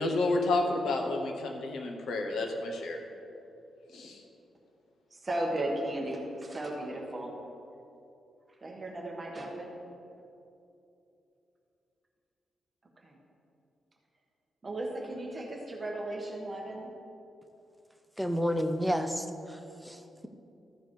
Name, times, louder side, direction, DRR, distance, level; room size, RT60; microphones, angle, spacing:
voice 1, 0.0-3.0 3.9-4.2, left 2 dB, 75° left, 3 dB, 1.0 m, -30 dB
voice 2, 5.1-7.3 8.6-9.8 13.0-13.2 14.6-16.9, right 1 dB, 20° right, -1 dB, 1.3 m, -35 dB
voice 3, 18.2-20.3, equal, ahead, 7 dB, 0.5 m, -31 dB
14.0 x 5.1 x 4.6 m, 2.8 s
wide cardioid pair, 140°, 0 cm